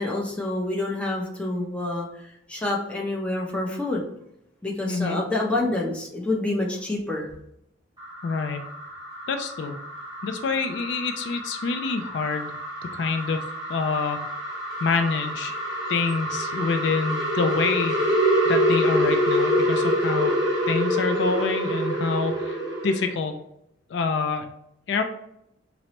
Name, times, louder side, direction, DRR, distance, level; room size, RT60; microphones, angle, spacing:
voice 1, 0.0-4.0 4.6-7.3, left 2 dB, 5° left, -2 dB, 0.6 m, -27 dB
voice 2, 4.9-5.2 8.2-8.6 9.3-9.8 10.2-12.6 12.9-14.2 14.8-15.6 15.9-22.6 22.8-23.4 23.9-24.5 24.9-25.0, left 4 dB, 65° left, 6 dB, 0.3 m, -27 dB
sound 1, 8.0-23.1, equal, 20° right, 1.0 m, -26 dB
4.4 x 2.0 x 2.8 m, 0.79 s
head